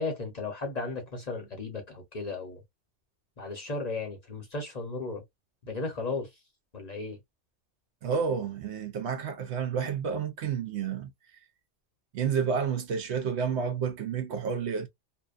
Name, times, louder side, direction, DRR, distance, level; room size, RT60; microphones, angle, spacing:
voice 1, 0.0-2.6 3.4-5.2 5.6-6.3 6.7-7.2, left 3 dB, 40° left, 0.8 m, -35 dB
voice 2, 8.0-11.1 12.1-14.9, right 6 dB, 70° right, 0.8 m, -30 dB
2.7 x 2.1 x 2.3 m
omnidirectional pair, 1.2 m